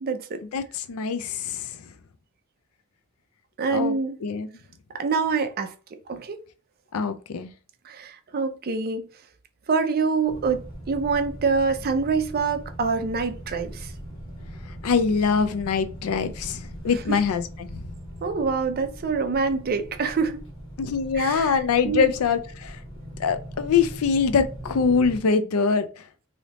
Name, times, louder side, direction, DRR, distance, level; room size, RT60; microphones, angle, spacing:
voice 1, 0.0-0.4 3.6-4.2 4.9-5.7 6.1-6.4 7.8-9.1 9.7-13.9 17.1-17.2 18.2-20.4 21.1-22.1, right 4 dB, 45° right, 0.5 m, -26 dB
voice 2, 0.5-1.8 3.7-3.9 4.2-4.5 6.9-7.5 14.8-17.8 20.8-22.8 23.2-25.9, left 5 dB, 85° left, 0.4 m, -23 dB
sound 1, 10.3-25.2, equal, 65° left, 1.4 m, -40 dB
3.2 x 2.7 x 2.9 m
head